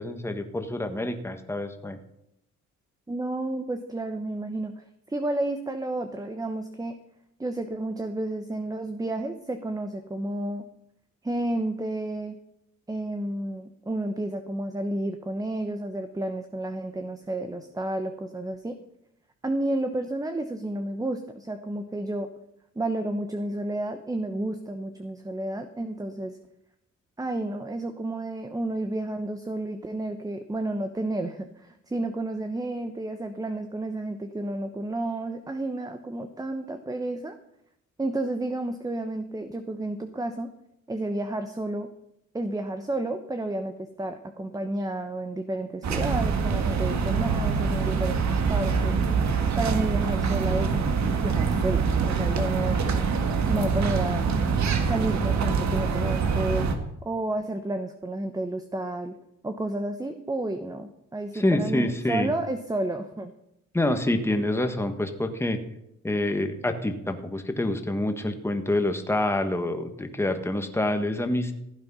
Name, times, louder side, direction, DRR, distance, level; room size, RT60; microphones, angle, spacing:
voice 1, 0.0-2.0 61.3-62.3 63.7-65.6 66.0-71.5, left 1 dB, 10° left, 6 dB, 1.5 m, -27 dB
voice 2, 3.1-6.9 7.4-10.6 11.2-12.3 12.9-18.8 19.4-22.3 22.7-26.4 27.2-37.4 38.0-40.5 40.9-41.9 42.3-49.3 49.6-50.7 51.2-52.8 53.5-54.3 54.9-59.2 59.4-63.3, right 2 dB, 10° right, 7 dB, 1.0 m, -31 dB
sound 1, 45.8-56.7, right 5 dB, 65° right, 1.8 m, -25 dB
15.0 x 8.8 x 5.6 m, 0.80 s
cardioid pair, 90°, 30 cm